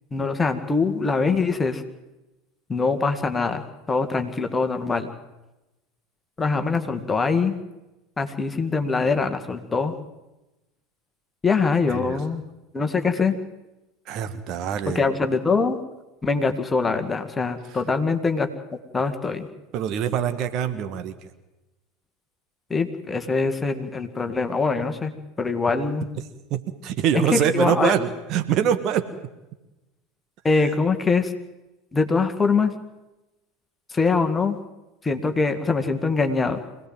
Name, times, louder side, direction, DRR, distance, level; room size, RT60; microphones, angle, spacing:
voice 1, 0.1-1.8 2.7-5.1 6.4-7.6 8.2-9.9 11.4-12.4 12.7-13.4 14.9-15.8 16.2-18.5 18.9-19.5 22.7-25.1 25.4-26.1 27.3-27.9 30.4-31.3 31.9-32.7 33.9-34.6 35.0-36.6, left 4 dB, 15° left, 7 dB, 2.1 m, -23 dB
voice 2, 11.9-12.2 14.1-15.1 19.7-21.1 26.5-29.1 30.6-30.7, right 9 dB, 45° right, 10 dB, 1.7 m, -24 dB
25.5 x 18.0 x 7.7 m, 1.0 s
figure-of-eight pair, 75°, 0 cm